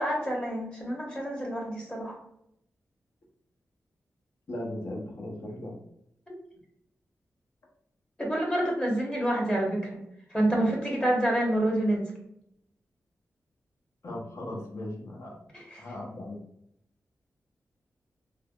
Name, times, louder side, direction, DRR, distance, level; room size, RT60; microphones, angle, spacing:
voice 1, 0.0-2.2 8.2-10.0 10.3-12.1 15.5-15.9, right 1 dB, 15° left, -2 dB, 1.0 m, -28 dB
voice 2, 4.5-5.8 14.0-15.5 15.8-16.4, left 1 dB, 60° left, -1 dB, 0.8 m, -37 dB
3.3 x 2.1 x 2.3 m, 0.76 s
wide cardioid pair, 90°, 6 cm